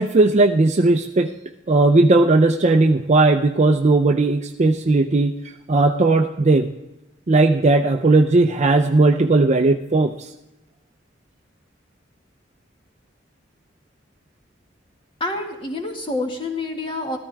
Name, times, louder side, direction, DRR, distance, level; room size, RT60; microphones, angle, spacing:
voice 1, 0.0-1.3 1.7-5.4 5.7-6.7 7.3-10.3, right 2 dB, 40° right, 6 dB, 0.5 m, -17 dB
voice 2, 15.2-17.2, left 2 dB, 30° left, 2 dB, 1.7 m, -27 dB
14.0 x 13.5 x 3.4 m, 0.95 s
head